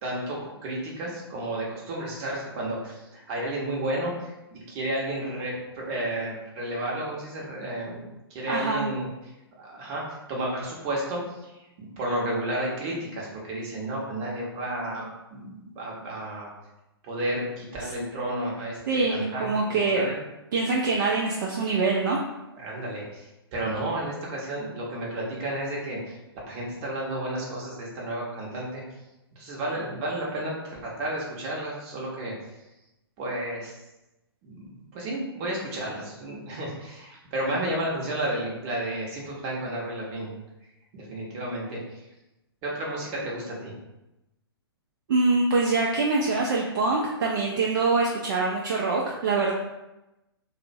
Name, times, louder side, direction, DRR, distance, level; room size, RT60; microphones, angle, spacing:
voice 1, 0.0-9.1 9.6-10.0 10.3-15.1 15.3-16.5 17.0-20.2 22.6-26.1 26.5-28.8 29.4-32.3 33.2-33.8 34.4-40.3 40.9-41.8 42.6-43.7, right 1 dB, 30° right, -3 dB, 0.7 m, -32 dB
voice 2, 8.5-8.8 18.9-20.1 20.5-22.2 45.1-49.5, right 3 dB, 50° right, -2 dB, 0.4 m, -24 dB
2.5 x 2.0 x 2.5 m, 0.96 s
figure-of-eight pair, 120°, 13 cm